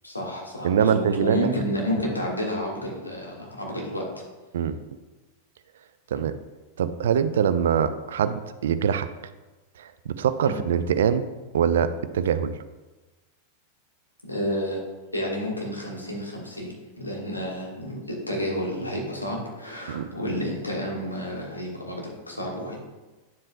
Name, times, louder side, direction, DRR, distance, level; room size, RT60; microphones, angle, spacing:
voice 1, 0.0-4.0 6.1-6.3 10.4-10.5 14.2-14.8 15.1-22.8, equal, 85° left, -2 dB, 1.6 m, -30 dB
voice 2, 0.6-1.4 4.5-4.7 6.1-6.3 6.8-9.1 9.8-11.3 11.5-12.5 19.9-20.1, right 8 dB, 60° right, 13 dB, 0.4 m, -23 dB
9.3 x 7.3 x 2.3 m, 1.2 s
figure-of-eight pair, 90°, 0 cm